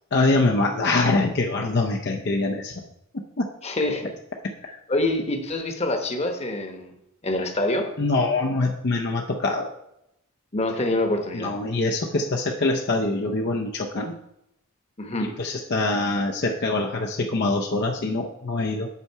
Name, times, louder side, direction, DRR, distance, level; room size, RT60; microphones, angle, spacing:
voice 1, 0.1-2.7 3.4-3.5 8.0-9.7 11.3-14.1 15.2-18.9, left 2 dB, 55° left, 1 dB, 0.6 m, -24 dB
voice 2, 3.6-4.1 4.7-6.9 7.2-7.9 10.5-11.5 15.0-15.3, left 1 dB, 30° left, 4 dB, 1.0 m, -26 dB
8.4 x 5.8 x 4.6 m, 0.84 s
head